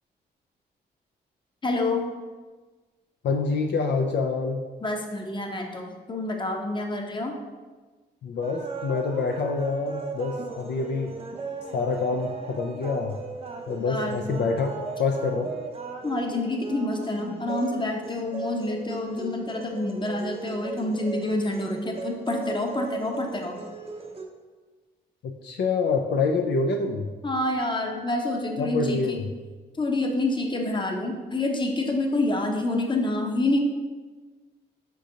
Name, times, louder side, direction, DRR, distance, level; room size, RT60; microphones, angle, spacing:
voice 1, 1.6-2.1 4.8-7.3 13.8-14.2 16.0-23.6 27.2-29.2 29.8-33.6, left 2 dB, 25° left, 2 dB, 0.7 m, -27 dB
voice 2, 3.2-4.6 8.2-11.1 11.7-13.2 13.7-15.5 25.2-27.1 28.6-29.2, left 4 dB, 70° left, 3 dB, 0.4 m, -26 dB
sound 1, 8.4-24.2, right 4 dB, 30° right, 0.6 m, -37 dB
5.0 x 3.8 x 2.7 m, 1.3 s
supercardioid pair, 60°, 19 cm